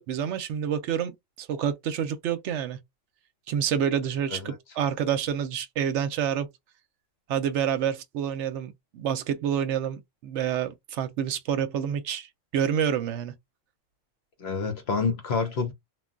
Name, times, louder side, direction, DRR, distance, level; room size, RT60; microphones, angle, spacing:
voice 1, 0.0-2.8 3.5-6.5 7.3-12.3 12.5-13.3, right 8 dB, 70° right, 0.8 m, -28 dB
voice 2, 14.4-15.7, left 5 dB, 60° left, 0.9 m, -28 dB
2.3 x 2.2 x 3.7 m
omnidirectional pair, 1.3 m